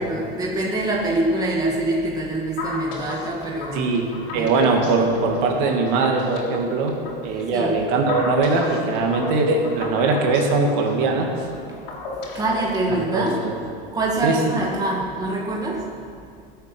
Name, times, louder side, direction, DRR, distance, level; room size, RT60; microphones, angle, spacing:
voice 1, 0.0-3.9 4.3-4.6 7.3-7.8 11.4-11.9 12.3-13.4 13.9-15.9, right 2 dB, 15° right, -2 dB, 1.9 m, -25 dB
sound 1, 2.6-13.6, left 3 dB, 70° left, 3.6 m, -35 dB
voice 2, 3.7-7.0 7.2-11.5 12.9-13.5 14.2-14.4, right 3 dB, 55° right, 2 dB, 2.4 m, -21 dB
21.0 x 8.2 x 6.2 m, 2.3 s
supercardioid pair, 140°, 29 cm